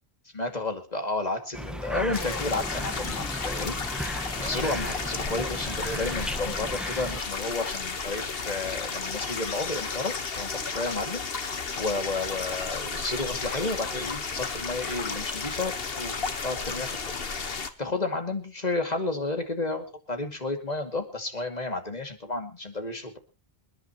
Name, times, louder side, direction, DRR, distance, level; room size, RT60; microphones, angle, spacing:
voice 1, 0.3-3.8 4.1-23.2, left 2 dB, 40° left, 5 dB, 2.6 m, -32 dB
sound 1, 1.5-7.2, equal, ahead, 1.2 m, -35 dB
sound 2, 2.1-17.7, left 5 dB, 65° left, 1.5 m, -33 dB
27.5 x 10.5 x 3.0 m, 0.31 s
omnidirectional pair, 1.0 m